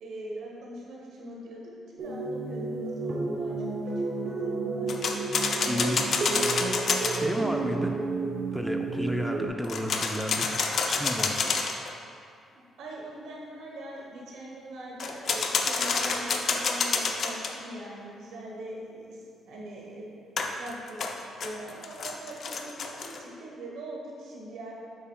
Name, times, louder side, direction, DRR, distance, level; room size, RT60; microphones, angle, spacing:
voice 1, 0.0-3.8 4.2-4.9 5.7-6.0 12.8-19.2 19.5-20.1 20.6-21.0 21.4-24.7, right 1 dB, 80° right, -3 dB, 1.1 m, -42 dB
sound 1, 2.0-9.5, right 3 dB, 55° right, 0.8 m, -31 dB
sound 2, 4.9-7.2 9.6-11.9 15.0-17.5 20.4-23.2, left 4 dB, 55° left, 0.5 m, -28 dB
voice 2, 5.7-6.0 7.2-7.9 8.5-11.3, equal, ahead, 3 dB, 0.6 m, -32 dB
8.1 x 5.6 x 2.3 m, 2.4 s
cardioid pair, 90°, 0 cm